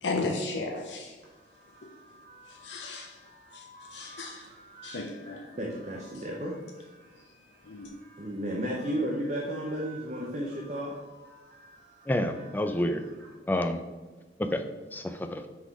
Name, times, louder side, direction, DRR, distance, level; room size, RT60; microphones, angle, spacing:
voice 1, 0.0-1.2 1.8-1.9 2.5-3.2 3.5-4.5 4.8-5.5 6.1-6.2 7.2-7.3 7.6-7.9, left 3 dB, 75° left, 3 dB, 0.6 m, -35 dB
sound 1, 1.2-13.4, right 2 dB, 65° right, 1.7 m, -54 dB
voice 2, 5.6-6.9 8.2-11.0, equal, 40° right, -1 dB, 0.7 m, -33 dB
voice 3, 12.1-13.0 13.5-13.8 14.4-14.6 14.9-15.4, left 1 dB, 10° left, 7 dB, 0.3 m, -28 dB
6.2 x 3.7 x 4.6 m, 1.3 s
head